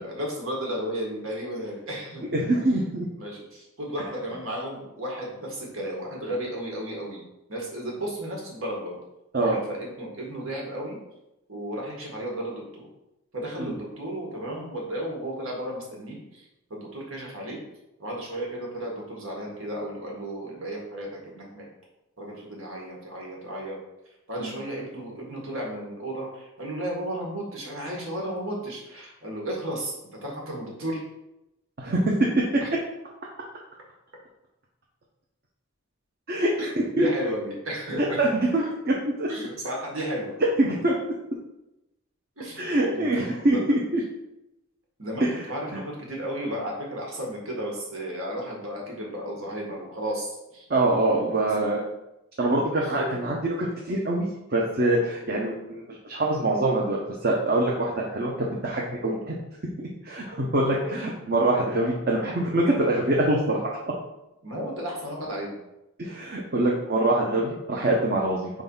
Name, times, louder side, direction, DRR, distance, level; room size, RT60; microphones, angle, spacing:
voice 1, 0.0-2.3 3.2-7.2 7.5-9.0 9.4-11.0 11.5-12.9 13.3-16.4 16.7-17.6 18.0-21.7 22.2-23.8 24.3-31.0 32.6-32.7 36.6-36.7 37.0-38.2 38.6-38.7 39.3-40.3 42.4-43.1 43.5-43.8 45.0-50.7 51.4-51.7 52.5-52.7 59.0-59.2 60.6-61.0 64.4-65.5, right 1 dB, 85° right, -2 dB, 1.9 m, -34 dB
voice 2, 2.3-3.1 9.3-9.6 24.4-24.6 31.8-32.4 32.7-32.8 36.3-36.5 37.0-37.1 38.0-39.3 40.6-40.9 42.6-44.0 45.2-45.3 50.7-51.8 52.4-54.3 54.5-59.4 59.8-63.7 66.0-68.5, right 1 dB, 50° right, -3 dB, 0.9 m, -24 dB
4.6 x 3.8 x 5.5 m, 0.90 s
head